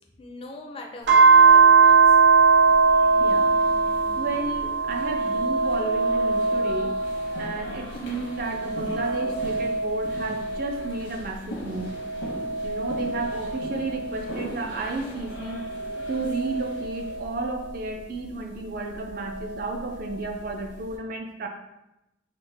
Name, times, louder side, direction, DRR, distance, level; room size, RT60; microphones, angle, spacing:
voice 1, 0.2-2.2, left 2 dB, 30° left, 1 dB, 0.4 m, -41 dB
sound 1, 1.1-7.8 8.2-11.1 11.7-14.5 15.2-17.7 19.0-20.1, right 5 dB, 70° right, 0.8 m, -22 dB
sound 2, 2.5-17.2, equal, 85° left, 0.9 m, -41 dB
voice 2, 3.2-3.6 4.2-7.0 7.4-11.9 12.6-15.7 16.1-21.5, right 3 dB, 50° right, 3 dB, 0.4 m, -32 dB
3.9 x 2.1 x 3.3 m, 0.91 s
head